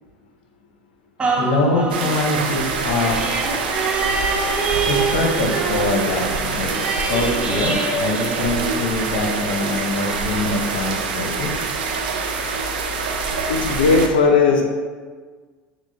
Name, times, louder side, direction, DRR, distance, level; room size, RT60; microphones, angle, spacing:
sound 1, 1.2-9.0 9.6-9.7, right 3 dB, 20° right, 0.9 m, -26 dB
voice 1, 1.4-3.2 4.9-6.7 7.1-11.5, left 2 dB, 70° left, 0 dB, 0.9 m, -23 dB
sound 2, 1.9-14.1, right 4 dB, 90° right, 0.5 m, -25 dB
voice 2, 13.5-14.6, left 4 dB, 85° left, 3 dB, 0.5 m, -16 dB
5.9 x 2.1 x 3.9 m, 1.5 s
hypercardioid pair, 90°, 5 cm